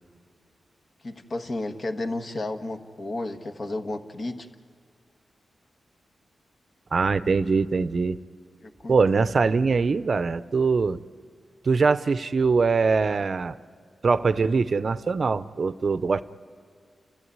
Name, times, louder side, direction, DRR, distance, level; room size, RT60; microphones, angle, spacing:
voice 1, 1.0-4.5 8.6-9.0, left 2 dB, 45° left, 7 dB, 1.4 m, -32 dB
voice 2, 6.9-8.2 8.9-11.0 11.6-13.5 14.0-16.2, right 4 dB, 50° right, 15 dB, 0.6 m, -22 dB
30.0 x 14.5 x 9.6 m, 2.1 s
wide cardioid pair, 105°, 0 cm